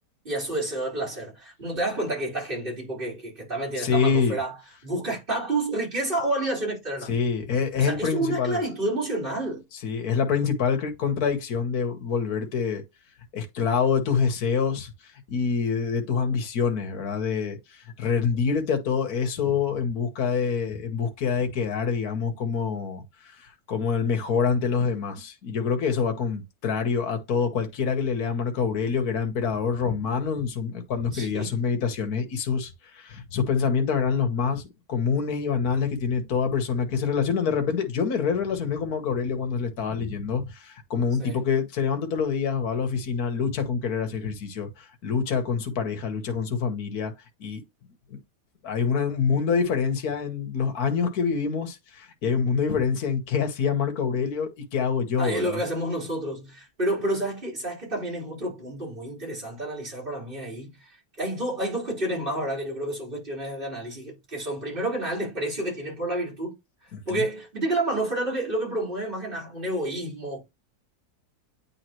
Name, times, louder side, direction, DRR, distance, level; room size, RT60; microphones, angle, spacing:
voice 1, 0.2-4.5 4.8-7.1 7.8-9.6 31.1-31.5 41.2-41.4 55.2-66.6 67.1-70.4, right 1 dB, 30° right, 4.0 m, -29 dB
voice 2, 3.8-4.4 7.1-8.6 9.8-12.8 13.3-47.1 47.4-47.6 48.1-48.2 48.6-55.6 66.9-67.2, left 6 dB, 65° left, 1.7 m, -26 dB
9.1 x 3.7 x 3.0 m
omnidirectional pair, 1.8 m